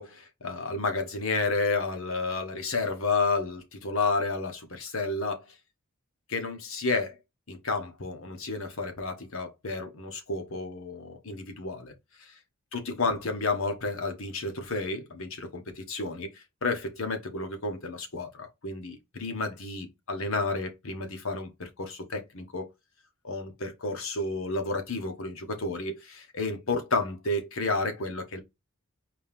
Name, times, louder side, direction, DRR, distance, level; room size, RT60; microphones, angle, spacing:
voice 1, 0.0-5.5 6.3-7.2 7.5-11.9 12.2-12.3 12.7-16.3 16.6-22.7 23.2-28.4, left 3 dB, 65° left, 1.2 m, -31 dB
4.4 x 2.8 x 3.5 m
head